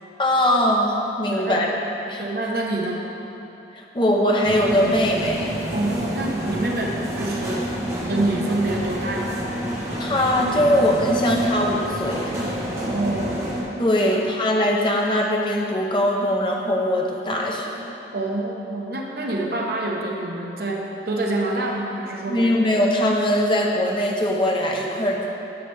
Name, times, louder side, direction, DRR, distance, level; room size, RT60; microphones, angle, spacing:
voice 1, 0.2-1.7 2.1-2.2 3.7-5.5 10.0-12.4 13.8-17.8 22.3-25.3, left 1 dB, 25° left, -1 dB, 0.7 m, -21 dB
voice 2, 1.3-1.7 2.2-3.0 5.7-7.7 8.1-9.3 12.8-13.4 14.0-14.2 18.1-22.5, right 2 dB, 55° right, -1 dB, 0.9 m, -26 dB
sound 1, 4.4-13.6, equal, 15° right, 0.9 m, -28 dB
10.0 x 5.7 x 3.3 m, 2.9 s
head